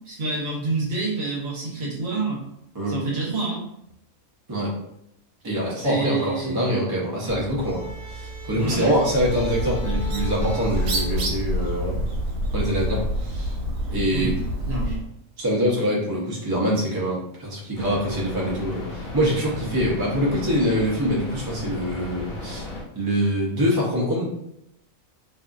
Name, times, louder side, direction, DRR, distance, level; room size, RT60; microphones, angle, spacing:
voice 1, 0.0-2.4 2.9-3.7 5.7-6.8 8.5-9.0 14.1-14.3 14.7-15.0, right 3 dB, 55° right, -4 dB, 1.0 m, -28 dB
voice 2, 5.4-12.0 12.5-13.6 13.9-14.3 15.4-24.3, equal, 35° right, -5 dB, 0.4 m, -24 dB
sound 1, 7.3-12.3, right 2 dB, 40° left, 0.7 m, -37 dB
Bird, 9.1-15.1, equal, 85° right, 1.0 m, -27 dB
sound 2, 17.7-22.8, left 2 dB, 80° left, 1.1 m, -35 dB
2.6 x 2.4 x 2.3 m, 0.81 s
omnidirectional pair, 1.4 m